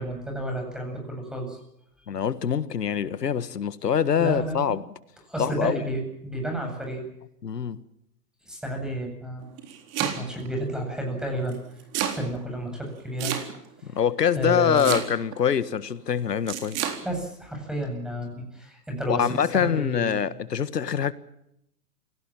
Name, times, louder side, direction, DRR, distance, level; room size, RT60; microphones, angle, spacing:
voice 1, 0.0-1.6 4.2-4.8 5.3-7.0 8.4-9.5 9.9-11.6 12.0-13.3 13.9-14.0 14.3-15.0 17.0-20.2, right 1 dB, ahead, 7.9 m, -31 dB
voice 2, 2.1-4.8 5.4-5.8 7.4-7.8 13.8-16.9 19.1-21.1, left 8 dB, 85° left, 1.7 m, -24 dB
Domestic sounds home sounds, 9.4-10.5 11.5-12.2 13.2-13.8 14.8-15.4 16.5-17.0, right 10 dB, 30° right, 3.9 m, -29 dB
28.0 x 17.5 x 7.5 m
hypercardioid pair, 125°, 47 cm